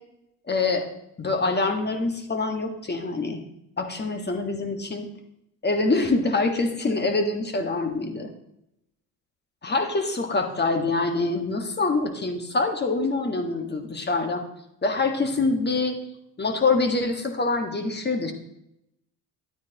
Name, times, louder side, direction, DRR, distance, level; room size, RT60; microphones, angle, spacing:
voice 1, 0.5-0.9 1.2-3.4 3.8-5.1 5.6-8.3 9.6-14.4 14.8-16.0 16.4-18.3, left 3 dB, 25° left, 5 dB, 1.7 m, -25 dB
11.0 x 9.3 x 3.0 m, 0.80 s
hypercardioid pair, 70°, 42 cm